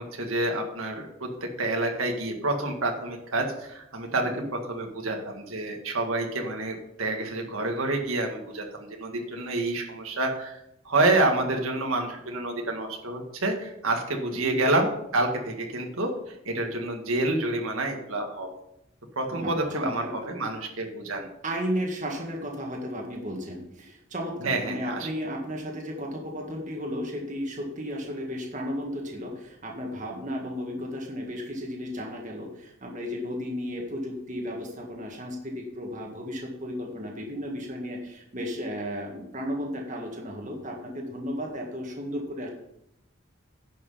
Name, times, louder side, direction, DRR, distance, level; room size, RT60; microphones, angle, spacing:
voice 1, 0.0-4.3 4.7-10.6 10.9-18.5 19.2-21.3 24.4-25.1, right 2 dB, 85° right, 2 dB, 1.9 m, -28 dB
voice 2, 19.3-20.1 21.4-42.5, equal, 35° right, 0 dB, 1.8 m, -34 dB
10.5 x 6.2 x 5.6 m, 0.80 s
head